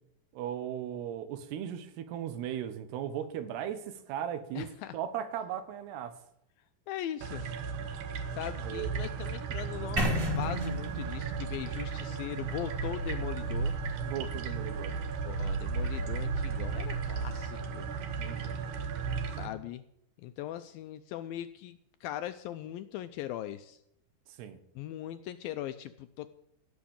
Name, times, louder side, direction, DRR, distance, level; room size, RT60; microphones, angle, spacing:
voice 1, 0.3-6.1 8.6-8.9 14.0-15.0 18.2-18.6 24.4-24.6, right 10 dB, 85° right, 11 dB, 3.3 m, -37 dB
voice 2, 4.6-5.0 6.9-7.4 8.3-10.1 10.4-13.7 15.3-17.9 19.4-19.8 20.2-23.8 24.8-26.3, left 12 dB, 80° left, 11 dB, 2.1 m, -40 dB
sound 1, 7.2-19.5, right 5 dB, 65° right, 2.2 m, -35 dB
sound 2, 10.0-13.9, equal, 30° right, 2.9 m, -34 dB
16.0 x 6.2 x 8.7 m, 0.75 s
omnidirectional pair, 4.6 m